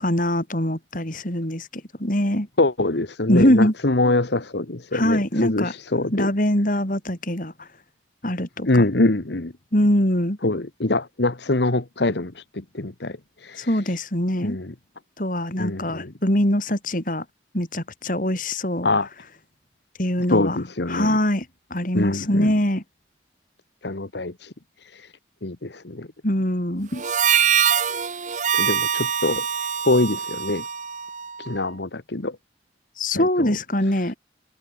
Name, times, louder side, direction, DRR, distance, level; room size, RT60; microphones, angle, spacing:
voice 1, 0.0-2.5 3.3-3.7 4.9-5.7 6.1-7.7 8.2-8.8 9.7-10.4 13.6-14.6 15.2-17.3 17.5-18.9 20.0-20.6 20.9-21.5 21.7-22.8 26.2-27.0 33.0-34.2, left 1 dB, 45° left, 5.1 m, -23 dB
voice 2, 2.6-6.3 8.7-9.5 10.4-13.8 14.4-14.7 15.6-16.1 18.8-19.1 20.3-21.2 21.9-22.5 23.8-24.5 24.8-25.1 25.4-26.1 28.5-29.4 29.8-30.6 31.4-32.4 33.1-33.6, left 2 dB, 65° left, 1.4 m, -24 dB
Harmonica, 27.0-31.6, right 8 dB, 40° right, 1.0 m, -23 dB
head